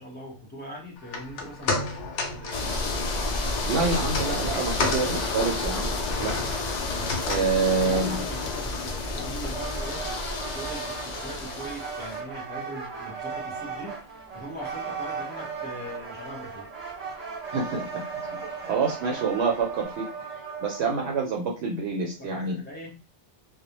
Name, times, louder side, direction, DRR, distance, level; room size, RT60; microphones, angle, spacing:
voice 1, 0.0-1.8 2.3-3.0 7.8-10.0 10.4-14.0 14.3-16.7 22.0-23.0, equal, 10° left, -4 dB, 0.7 m, -40 dB
sound 1, 1.0-13.3 13.7-13.8, left 3 dB, 80° left, 0.9 m, -36 dB
sound 2, 2.5-12.2, left 3 dB, 60° left, 0.4 m, -30 dB
voice 2, 3.6-6.3 7.2-8.2 17.5-18.4 18.7-20.1 20.6-22.6, right 4 dB, 70° right, 1 dB, 0.8 m, -27 dB
sound 3, 9.4-21.2, right 5 dB, 40° right, 0.8 m, -37 dB
2.1 x 2.0 x 2.8 m, 0.34 s
omnidirectional pair, 1.2 m